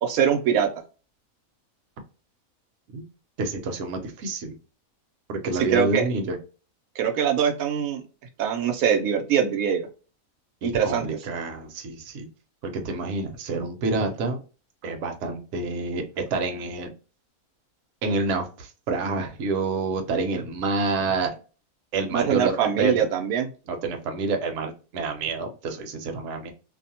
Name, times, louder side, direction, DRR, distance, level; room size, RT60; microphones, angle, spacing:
voice 1, 0.0-0.7 5.6-6.1 7.0-8.0 8.4-9.9 10.6-11.1 22.1-23.5, right 8 dB, 90° right, 3 dB, 1.1 m, -23 dB
voice 2, 3.4-4.5 5.3-6.4 10.6-12.3 12.7-14.4 14.8-16.9 18.0-21.3 21.9-22.9 23.7-26.5, right 3 dB, 65° right, 4 dB, 0.9 m, -28 dB
2.6 x 2.1 x 2.7 m, 0.34 s
omnidirectional pair, 1.4 m